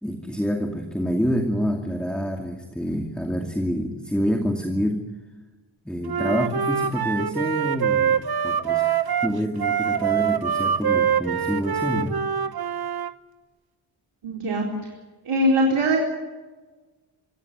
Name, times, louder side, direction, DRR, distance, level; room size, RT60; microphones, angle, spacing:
voice 1, 0.0-5.1 5.9-12.2, equal, ahead, 3 dB, 2.4 m, -27 dB
Wind instrument woodwind instrument, 6.1-13.1, right 8 dB, 50° right, 1.1 m, -24 dB
voice 2, 14.2-14.7 15.2-16.0, right 1 dB, 85° right, -1 dB, 4.4 m, -21 dB
25.0 x 17.0 x 9.4 m, 1.3 s
wide cardioid pair, 130°, 49 cm